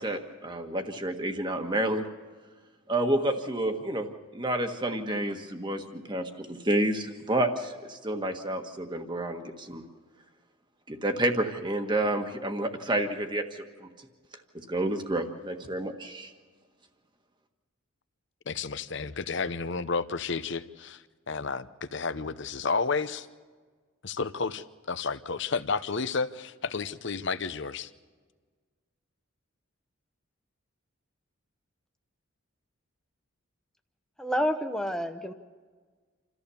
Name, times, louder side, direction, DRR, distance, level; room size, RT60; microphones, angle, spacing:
voice 1, 0.0-2.0 2.9-9.8 10.9-13.9 14.5-16.3, right 1 dB, 20° right, 5 dB, 1.5 m, -30 dB
voice 2, 18.5-23.3 24.0-27.9, left 4 dB, 55° left, 13 dB, 0.8 m, -31 dB
voice 3, 34.2-35.3, equal, 5° left, 6 dB, 0.9 m, -29 dB
28.0 x 14.5 x 7.0 m, 1.5 s
head